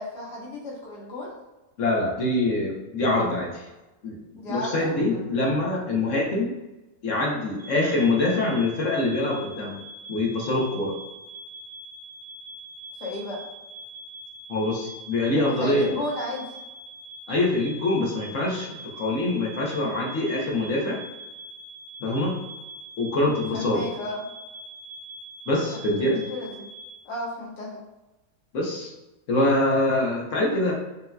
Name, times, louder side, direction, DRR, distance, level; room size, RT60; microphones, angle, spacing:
voice 1, 0.0-1.4 4.4-5.5 13.0-13.4 15.3-16.6 23.5-24.2 25.7-26.7 27.0-27.8, left 1 dB, 90° left, -5 dB, 1.8 m, -34 dB
voice 2, 1.8-3.7 4.0-4.2 4.5-6.5 7.0-9.8 10.1-11.0 14.5-15.9 17.3-21.0 22.0-22.4 23.0-23.9 25.5-26.2 28.5-28.9 29.3-30.7, left 2 dB, 55° left, -2 dB, 1.1 m, -24 dB
sound 1, 7.6-26.9, right 1 dB, 40° right, 0.9 m, -43 dB
5.4 x 2.8 x 2.3 m, 1.0 s
omnidirectional pair, 1.7 m